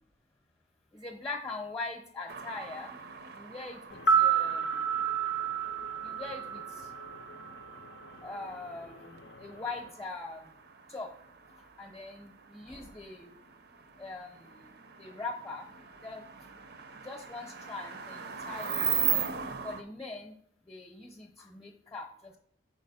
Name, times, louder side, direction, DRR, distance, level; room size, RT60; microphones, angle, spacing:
voice 1, 0.9-3.0 3.3-4.9 6.0-6.9 8.2-10.5 10.9-11.1 11.6-13.3 14.0-14.7 15.0-15.7 16.0-16.2 17.0-19.3 19.6-20.3 20.7-22.4, left 3 dB, 20° left, 3 dB, 0.8 m, -42 dB
sound 1, 2.3-19.8, right 8 dB, 55° right, 0.5 m, -39 dB
sound 2, 3.9-8.1 8.4-8.5, right 7 dB, 65° left, 0.5 m, -30 dB
5.1 x 4.2 x 5.4 m, 0.65 s
head